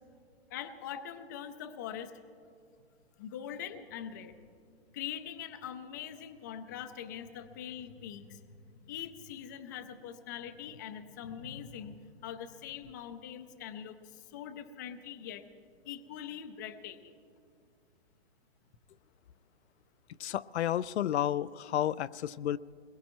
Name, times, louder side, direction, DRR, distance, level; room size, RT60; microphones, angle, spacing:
voice 1, 0.5-2.1 3.2-4.4 4.9-8.4 8.7-15.4 15.9-17.1, left 9 dB, 20° left, 9 dB, 0.4 m, -43 dB
voice 2, 20.2-22.6, left 11 dB, 85° left, 16 dB, 0.5 m, -31 dB
22.0 x 21.5 x 3.1 m, 2.3 s
hypercardioid pair, 155°, 32 cm